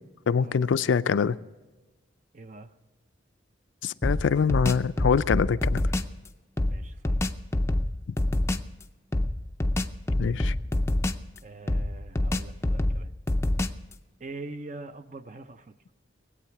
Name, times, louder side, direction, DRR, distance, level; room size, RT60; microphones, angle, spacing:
voice 1, 0.3-1.4 3.8-5.8 10.2-10.5, left 6 dB, 85° left, 15 dB, 0.4 m, -24 dB
voice 2, 2.3-2.7 6.6-7.3 11.4-13.1 14.2-15.7, right 3 dB, 40° right, 10 dB, 0.6 m, -43 dB
sound 1, 4.0-6.2 6.6-8.7 9.1-11.4 11.7-13.9, left 1 dB, 15° left, 0.4 m, -27 dB
19.5 x 8.5 x 5.9 m, 1.2 s
head